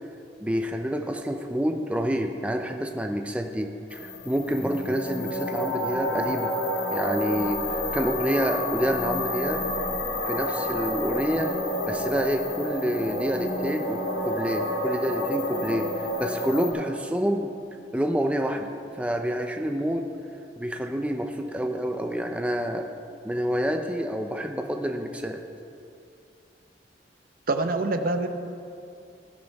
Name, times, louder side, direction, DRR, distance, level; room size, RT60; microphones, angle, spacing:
voice 1, 0.4-6.5 6.9-9.7 10.3-11.6 11.9-17.5 17.9-18.7 19.0-20.1 20.6-22.9 23.2-25.4, equal, 5° right, 4 dB, 0.5 m, -28 dB
sound 1, 3.9-16.7, left 1 dB, 60° left, 2.6 m, -29 dB
voice 2, 27.5-28.3, right 2 dB, 55° right, 7 dB, 0.7 m, -25 dB
16.0 x 10.5 x 3.5 m, 2.5 s
head